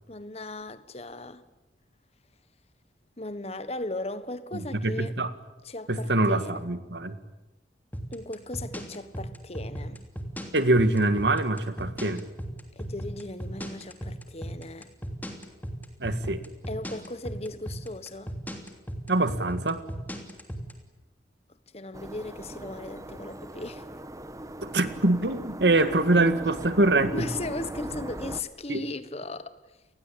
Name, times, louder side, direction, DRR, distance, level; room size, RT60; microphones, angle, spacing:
voice 1, 0.1-1.4 3.2-5.1 5.6-6.6 8.1-10.0 12.7-14.9 16.7-18.3 21.7-23.8 27.1-29.5, left 2 dB, 35° left, 1.4 m, -37 dB
voice 2, 4.5-5.3 5.9-7.2 10.5-12.3 16.0-16.4 19.1-19.8 24.6-27.3 28.7-28.8, right 2 dB, 70° right, 1.9 m, -24 dB
sound 1, 7.9-20.7, equal, 10° left, 3.0 m, -35 dB
sound 2, 21.9-28.4, right 1 dB, 20° right, 1.2 m, -39 dB
29.5 x 21.0 x 8.7 m
head